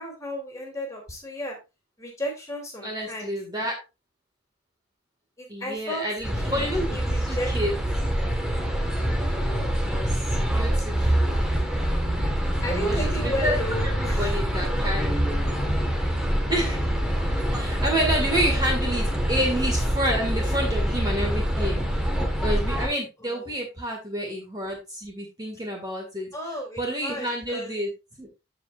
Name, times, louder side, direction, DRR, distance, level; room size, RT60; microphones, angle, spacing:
voice 1, 0.0-1.6 2.0-3.4 5.4-6.0 6.4-7.5 12.2-12.3 12.6-14.4 14.8-14.9 23.2-23.5 26.3-27.8, equal, 15° left, 1 dB, 2.8 m, -33 dB
voice 2, 2.8-3.8 5.5-7.0 7.2-7.7 9.9-11.4 12.8-15.1 16.5-16.8 17.5-21.8 22.2-26.3 26.8-27.9 28.2-28.3, equal, 20° right, 0 dB, 1.9 m, -29 dB
sound 1, 6.2-22.9, equal, 5° right, 1.4 m, -25 dB
15.0 x 5.0 x 2.5 m, 0.26 s
head